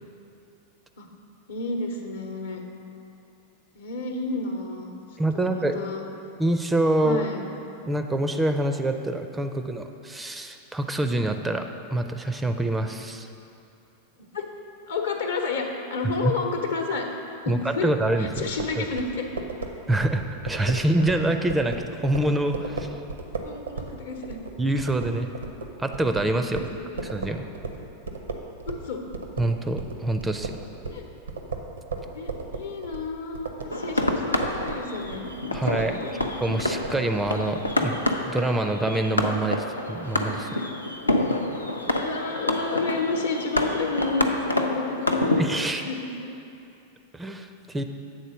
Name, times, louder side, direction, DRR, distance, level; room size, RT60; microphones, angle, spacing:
voice 1, 1.5-2.6 3.7-5.0 5.3-6.1 7.0-7.5 14.3-14.5 14.9-17.1 17.4-17.9 18.2-19.3 23.4-24.4 26.5-27.0 28.7-29.0 30.9-31.0 32.1-36.1 41.0-41.3 42.0-45.4 45.7-46.3, left 3 dB, 65° left, 2 dB, 0.8 m, -31 dB
voice 2, 5.2-5.8 6.4-7.3 7.9-11.6 11.9-13.3 16.2-16.3 17.5-18.5 18.8-18.9 19.9-21.8 22.0-22.9 24.6-25.3 25.8-26.7 27.0-27.5 29.4-30.5 35.5-36.0 36.4-38.0 38.3-40.6 45.4-45.8 47.1-47.8, right 1 dB, 10° right, 6 dB, 0.4 m, -25 dB
sound 1, 18.4-28.9 29.1-37.9, right 4 dB, 75° right, 0.6 m, -36 dB
sound 2, 33.7-45.4, left 1 dB, 85° left, 0.4 m, -28 dB
7.9 x 4.0 x 6.2 m, 2.7 s
figure-of-eight pair, 90°, 0 cm